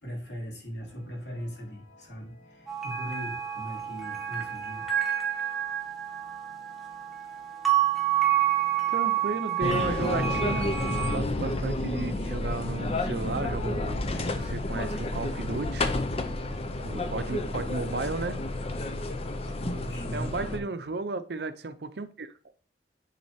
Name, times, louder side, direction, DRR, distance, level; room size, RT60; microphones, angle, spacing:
voice 1, 0.0-4.9 19.6-20.7, equal, 80° left, 2.8 m, -39 dB
sound 1, 0.8-13.6, equal, 60° left, 3.3 m, -54 dB
sound 2, 2.7-11.2, right 12 dB, ahead, 1.1 m, -29 dB
voice 2, 8.9-10.7 11.1-15.9 16.8-18.4 20.1-22.3, right 3 dB, 65° right, 0.6 m, -34 dB
sound 3, 9.6-20.6, left 2 dB, 35° left, 0.6 m, -30 dB
9.5 x 4.1 x 2.8 m
head